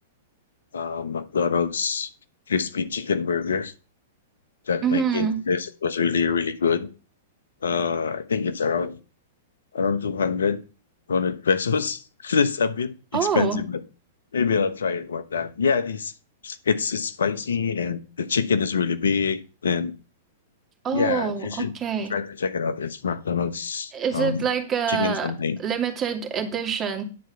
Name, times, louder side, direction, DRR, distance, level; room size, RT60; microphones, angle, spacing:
voice 1, 0.7-2.1 2.5-3.7 4.7-6.9 7.6-9.0 9.7-10.6 11.1-13.8 14.3-16.1 16.4-19.9 20.9-21.7 22.1-24.5 24.9-25.6, left 5 dB, 80° left, 12 dB, 1.1 m, -25 dB
voice 2, 4.8-5.4 13.1-13.6 20.8-22.2 23.9-25.3 25.6-27.0, right 7 dB, 25° right, 4 dB, 2.5 m, -26 dB
10.5 x 4.6 x 7.0 m, 0.34 s
hypercardioid pair, 110°, 0 cm